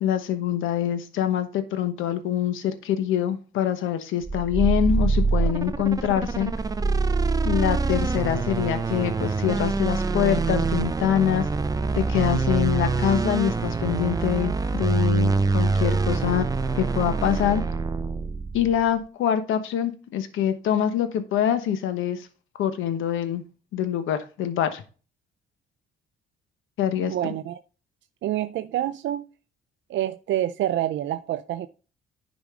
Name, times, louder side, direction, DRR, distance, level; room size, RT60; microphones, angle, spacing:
voice 1, 0.0-6.5 7.4-11.4 11.9-16.5 16.7-17.6 18.5-22.3 22.6-23.4 23.7-24.8 26.8-27.1, left 10 dB, 85° left, 1.1 m, -25 dB
sound 1, 4.2-18.8, right 3 dB, 20° right, 0.5 m, -25 dB
voice 2, 27.1-27.6 28.2-29.3 29.9-31.7, right 12 dB, 70° right, 0.5 m, -27 dB
10.5 x 5.1 x 3.7 m
cardioid pair, 90°, 20 cm